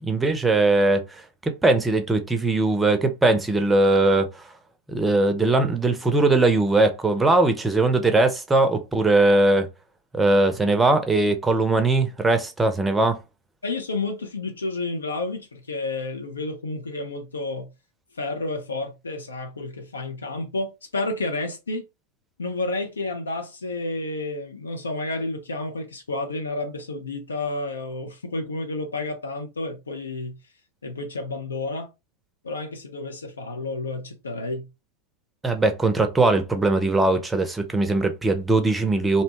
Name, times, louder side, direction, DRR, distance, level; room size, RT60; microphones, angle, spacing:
voice 1, 0.0-4.4 4.9-9.7 10.1-13.2 35.4-39.2, right 2 dB, 10° right, 0.5 m, -20 dB
voice 2, 13.6-17.7 18.1-21.9 22.4-30.4 30.8-31.9 32.4-34.7, left 2 dB, 75° left, 0.5 m, -30 dB
2.7 x 2.2 x 2.8 m
figure-of-eight pair, 90°, 0 cm